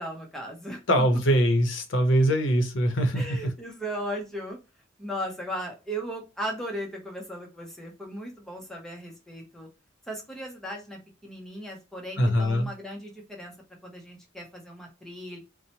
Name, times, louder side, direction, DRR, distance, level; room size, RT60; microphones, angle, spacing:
voice 1, 0.0-0.8 3.1-4.6 5.0-9.7 10.1-13.5 13.8-15.4, equal, ahead, 0 dB, 0.7 m, -37 dB
voice 2, 0.9-3.5 12.2-12.7, equal, 70° left, 5 dB, 0.7 m, -23 dB
2.8 x 2.1 x 2.7 m, 0.29 s
head